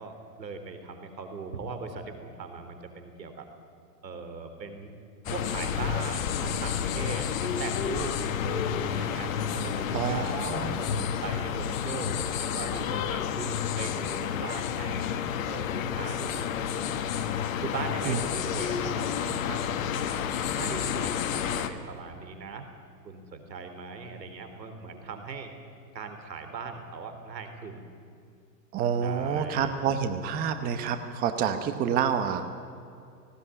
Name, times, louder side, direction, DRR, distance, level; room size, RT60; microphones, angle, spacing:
voice 1, 0.0-3.5 4.0-4.9 5.3-10.8 11.2-15.1 15.5-16.5 17.6-20.2 20.5-22.7 23.0-25.5 25.9-27.8 29.0-29.7, right 4 dB, 85° right, 7 dB, 4.0 m, -39 dB
sound 1, 5.3-21.7, left 8 dB, 50° left, 1.6 m, -30 dB
voice 2, 9.9-11.1 18.0-18.2 28.7-32.4, right 7 dB, 20° right, 8 dB, 1.0 m, -28 dB
18.5 x 17.5 x 9.9 m, 2.4 s
hypercardioid pair, 140°, 49 cm